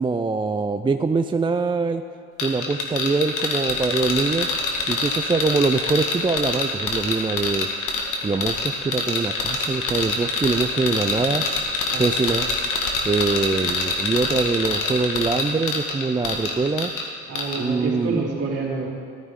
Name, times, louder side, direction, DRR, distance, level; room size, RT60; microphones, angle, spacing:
voice 1, 0.0-2.0 2.4-4.5 4.9-7.7 8.2-11.4 12.0-12.5 13.0-16.9 17.6-18.2, right 4 dB, 15° right, 8 dB, 0.4 m, -23 dB
sound 1, 2.4-17.1 17.4-17.6, left 3 dB, 85° left, 1.7 m, -25 dB
voice 2, 17.3-18.9, right 3 dB, 55° right, -5 dB, 3.3 m, -28 dB
14.5 x 12.5 x 3.7 m, 2.2 s
cardioid pair, 90°, 30 cm